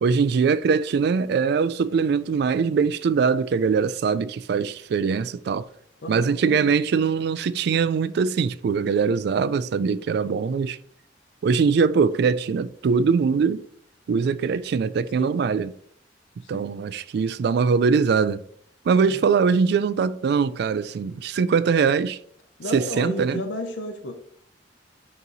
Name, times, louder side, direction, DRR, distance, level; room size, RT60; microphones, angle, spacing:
voice 1, 0.0-5.7 6.1-10.8 11.4-13.6 14.1-15.7 16.5-18.4 18.9-22.2 22.7-23.4, right 5 dB, 60° right, 0.3 m, -22 dB
voice 2, 6.0-6.7 15.2-15.5 16.4-16.7 19.1-19.3 22.6-24.1, left 1 dB, 85° left, 0.7 m, -33 dB
8.1 x 3.0 x 3.9 m
head